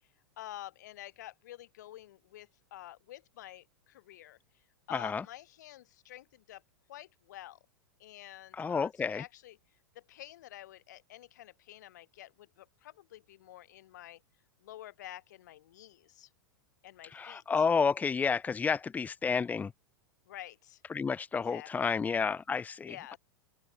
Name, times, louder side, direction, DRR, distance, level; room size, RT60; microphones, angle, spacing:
voice 1, 0.4-4.4 4.9-6.6 6.9-7.6 8.0-9.6 9.9-14.2 14.6-16.3 16.8-17.6 20.3-20.8 21.3-21.9 22.9-23.2, left 14 dB, 55° left, 7.8 m, -49 dB
voice 2, 4.9-5.2 8.5-9.2 17.1-19.7 20.9-23.2, left 5 dB, 15° left, 1.3 m, -30 dB
figure-of-eight pair, 90°, 11 cm